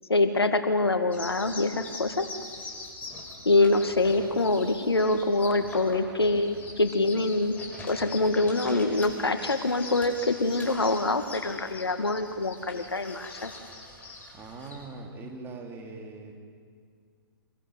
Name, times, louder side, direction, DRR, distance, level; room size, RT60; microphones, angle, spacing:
voice 1, 0.1-2.2 3.4-7.6 7.8-13.5, left 2 dB, 90° left, 8 dB, 2.1 m, -25 dB
sound 1, 1.1-14.8, left 2 dB, 15° left, 4.9 m, -42 dB
voice 2, 14.0-16.3, right 3 dB, 20° right, 1 dB, 3.7 m, -42 dB
25.5 x 21.5 x 9.1 m, 2.1 s
hypercardioid pair, 130°, 13 cm